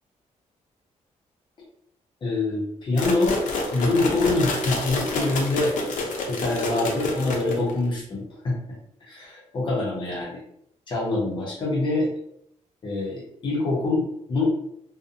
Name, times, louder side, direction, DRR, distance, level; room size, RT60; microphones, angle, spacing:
voice 1, 2.2-3.4 3.7-5.7 6.3-8.6 9.0-10.4 10.9-12.1 12.8-14.5, left 2 dB, 40° left, -4 dB, 0.6 m, -25 dB
sound 1, 3.0-7.8, left 2 dB, 80° left, 0.5 m, -29 dB
2.6 x 2.0 x 2.5 m, 0.74 s
wide cardioid pair, 170°, 13 cm